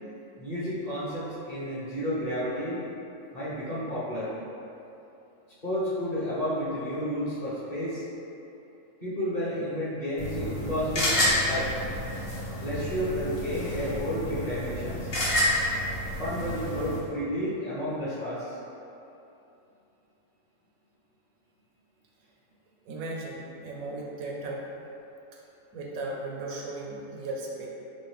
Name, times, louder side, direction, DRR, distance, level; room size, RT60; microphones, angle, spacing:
voice 1, 0.4-2.8 3.3-4.3 5.6-8.0 9.0-11.7 12.6-15.1 16.2-18.6, equal, 35° left, -10 dB, 0.8 m, -31 dB
sound 1, 10.2-17.0, left 1 dB, 85° left, 1.4 m, -29 dB
voice 2, 22.9-24.6 25.7-27.7, right 2 dB, 90° right, -2 dB, 1.1 m, -36 dB
4.2 x 2.5 x 3.2 m, 2.8 s
omnidirectional pair, 1.4 m